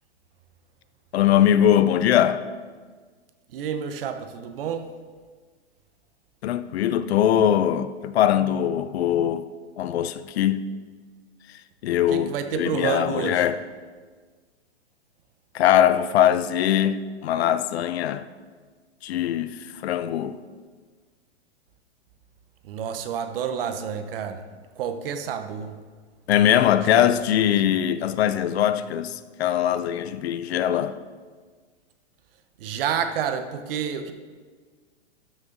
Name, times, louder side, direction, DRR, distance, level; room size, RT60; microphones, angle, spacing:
voice 1, 1.1-2.4 6.4-9.5 9.8-10.7 11.8-13.6 15.5-18.3 19.0-20.4 26.3-31.0, left 10 dB, 65° left, 0.6 m, -21 dB
voice 2, 3.5-4.9 12.1-13.5 22.6-24.5 24.7-25.8 26.9-27.6 32.6-34.1, right 7 dB, 55° right, 1.0 m, -29 dB
12.5 x 6.5 x 4.0 m
hypercardioid pair, 150°, 34 cm